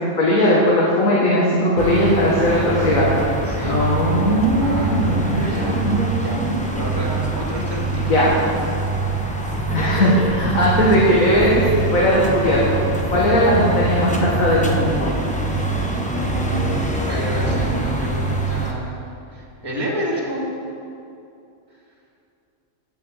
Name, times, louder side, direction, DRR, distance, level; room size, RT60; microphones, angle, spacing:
voice 1, 0.0-3.1 3.6-6.5 8.1-8.3 9.7-11.6 11.9-12.8 13.1-15.1, equal, 65° left, -6 dB, 2.1 m, -18 dB
sound 1, 1.8-18.7, right 2 dB, 5° left, 0.9 m, -24 dB
voice 2, 3.4-3.9 4.6-5.8 6.2-6.4 6.7-8.1 17.1-18.9 19.3-20.4, right 1 dB, 15° right, -3 dB, 2.3 m, -29 dB
11.0 x 7.1 x 8.3 m, 2.6 s
omnidirectional pair, 1.6 m